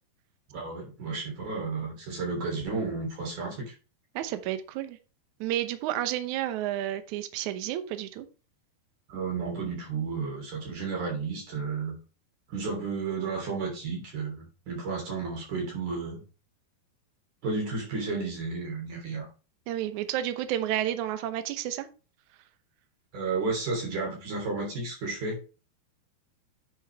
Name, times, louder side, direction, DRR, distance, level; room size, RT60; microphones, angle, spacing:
voice 1, 0.5-3.7 9.1-12.0 12.5-16.2 17.4-19.3 23.1-25.5, right 4 dB, 50° right, -1 dB, 4.6 m, -32 dB
voice 2, 4.2-5.0 5.4-8.3 19.7-21.9, right 12 dB, 75° right, 10 dB, 1.7 m, -31 dB
9.8 x 6.3 x 3.5 m, 0.34 s
omnidirectional pair, 4.6 m